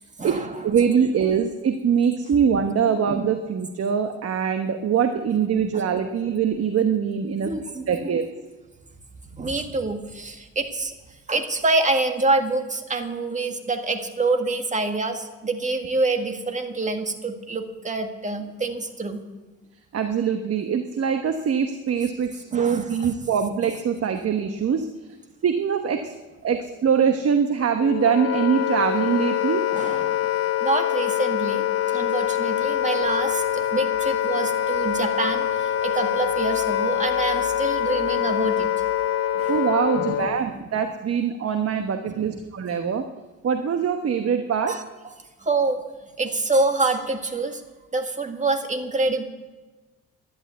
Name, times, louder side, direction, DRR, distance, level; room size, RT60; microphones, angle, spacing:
voice 1, 0.2-7.5 7.9-8.2 19.9-24.9 25.4-26.1 26.4-29.7 39.5-43.0 43.4-44.8, right 7 dB, 50° right, 6 dB, 1.2 m, -23 dB
voice 2, 7.4-8.1 9.3-10.9 11.3-19.2 22.5-23.1 29.7-30.3 30.6-38.7 39.3-39.5 40.0-40.3 44.7-44.8 45.4-45.8 46.2-47.6 47.9-49.2, right 3 dB, 25° right, 5 dB, 1.9 m, -26 dB
Wind instrument woodwind instrument, 27.8-40.4, left 11 dB, 50° left, 0.5 m, -24 dB
11.5 x 11.5 x 8.2 m, 1.2 s
cardioid pair, 90°, 30 cm